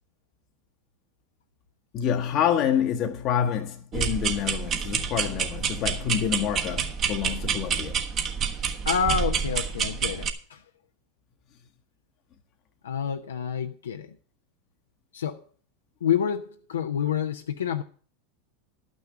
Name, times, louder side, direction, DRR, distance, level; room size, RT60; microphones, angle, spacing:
voice 1, 1.9-8.0, left 9 dB, 45° left, 0.9 m, -27 dB
sound 1, 3.9-10.3, right 7 dB, 40° right, 1.4 m, -28 dB
voice 2, 8.9-10.6 12.8-14.1 15.1-15.4 16.0-17.8, left 8 dB, 85° left, 0.6 m, -28 dB
11.5 x 6.3 x 6.9 m
hypercardioid pair, 95°, 0 cm